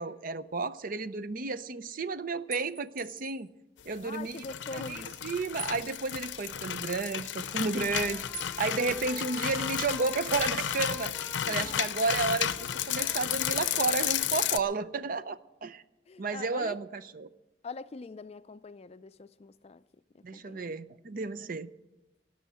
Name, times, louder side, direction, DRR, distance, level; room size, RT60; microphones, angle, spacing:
voice 1, 0.0-3.5 3.9-4.4 4.7-8.2 8.6-15.8 16.2-17.3 20.2-21.7, right 3 dB, 50° right, 0.5 m, -32 dB
sound 1, 2.5-3.5 5.6-6.6 8.3-8.6 8.9-9.8, right 4 dB, 70° right, 1.3 m, -45 dB
voice 2, 4.0-5.1 11.5-11.8 16.1-16.8 17.6-19.8 20.1-20.8, left 3 dB, 35° left, 0.4 m, -43 dB
sound 2, 4.1-14.6, left 10 dB, 85° left, 0.6 m, -33 dB
Trumpet, 7.4-14.2, left 3 dB, 15° left, 1.0 m, -47 dB
17.5 x 6.3 x 9.7 m
head